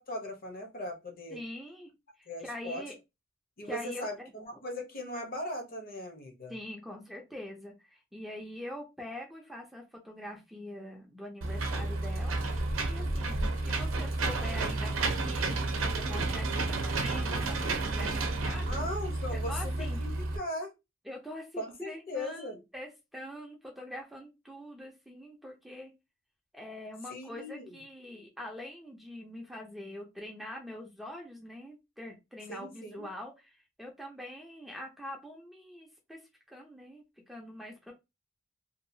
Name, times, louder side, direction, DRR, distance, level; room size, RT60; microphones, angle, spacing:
voice 1, 0.1-1.4 2.3-2.8 3.6-6.6 18.6-20.7 21.6-22.6 27.1-27.8 32.5-33.1, left 1 dB, 45° left, 0.8 m, -39 dB
voice 2, 1.3-1.9 2.2-2.9 3.6-4.3 6.5-18.8 19.3-20.0 21.1-25.9 26.5-36.2 36.5-37.9, left 1 dB, ahead, 0.5 m, -44 dB
Engine / Mechanisms, 11.4-20.4, right 2 dB, 80° right, 0.6 m, -31 dB
2.7 x 2.3 x 2.6 m
head